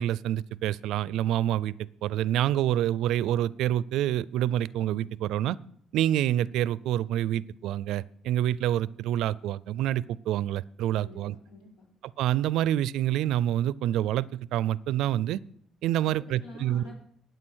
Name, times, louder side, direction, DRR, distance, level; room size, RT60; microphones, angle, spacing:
voice 1, 0.0-5.6 5.9-11.4 12.2-15.4 15.8-16.8, right 12 dB, 85° right, 21 dB, 0.4 m, -27 dB
voice 2, 11.0-11.8 16.0-17.0, left 2 dB, 85° left, 0 dB, 5.1 m, -48 dB
13.0 x 9.2 x 6.3 m, 0.65 s
cardioid pair, 115°, 0 cm